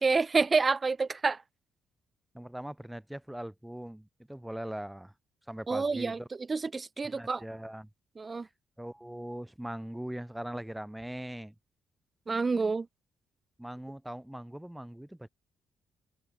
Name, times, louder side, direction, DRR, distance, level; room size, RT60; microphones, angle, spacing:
voice 1, 0.0-1.4 5.7-6.2 6.5-7.4 8.2-8.5 12.3-12.9, right 4 dB, 30° right, 0.8 m, -28 dB
voice 2, 2.3-5.1 5.5-6.3 7.1-7.9 8.8-11.5 13.6-15.3, right 1 dB, 5° right, 6.1 m, -40 dB
open air
cardioid pair, 90°, 0 cm